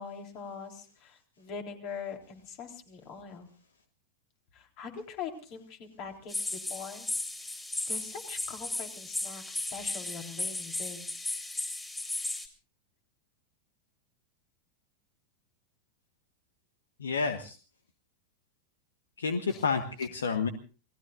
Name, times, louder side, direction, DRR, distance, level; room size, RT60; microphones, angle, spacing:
voice 1, 0.0-3.5 4.5-7.1 7.3-11.3 17.3-17.5 19.5-19.7 20.0-20.1, left 6 dB, 40° left, 4 dB, 3.8 m, -43 dB
sound 1, 6.3-12.5, left 2 dB, 10° left, 3.8 m, -35 dB
voice 2, 17.0-17.6 19.2-20.5, left 5 dB, 70° left, 9 dB, 1.3 m, -30 dB
29.0 x 19.5 x 2.5 m, 0.37 s
figure-of-eight pair, 90°, 0 cm